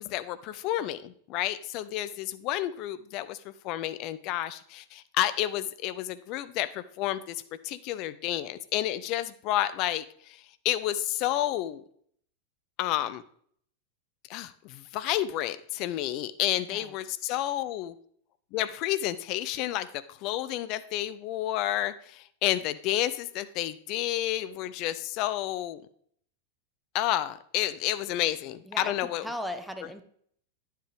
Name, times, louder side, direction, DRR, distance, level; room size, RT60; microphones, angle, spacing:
voice 1, 0.0-11.8 12.8-13.2 14.3-17.9 18.5-25.8 26.9-29.3, left 13 dB, 40° left, 14 dB, 0.5 m, -30 dB
voice 2, 16.6-16.9 28.7-30.0, equal, ahead, 6 dB, 1.0 m, -38 dB
10.0 x 7.4 x 3.5 m, 0.62 s
figure-of-eight pair, 90°, 0 cm